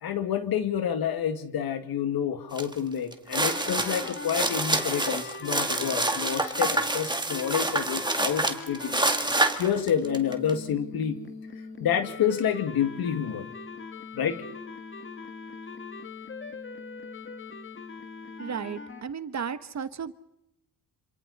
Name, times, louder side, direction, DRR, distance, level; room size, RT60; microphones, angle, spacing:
voice 1, 0.0-9.0 9.6-11.2 11.8-13.5 14.1-14.4, left 8 dB, 75° left, 8 dB, 2.2 m, -28 dB
sound 1, 2.6-2.7 3.1-10.5, right 2 dB, 10° right, 2.2 m, -27 dB
sound 2, 3.5-9.6 10.0-19.0, left 4 dB, 30° left, 1.9 m, -41 dB
voice 2, 18.4-20.1, right 7 dB, 45° right, 12 dB, 1.3 m, -34 dB
27.0 x 26.5 x 4.2 m, 0.81 s
cardioid pair, 80°, 37 cm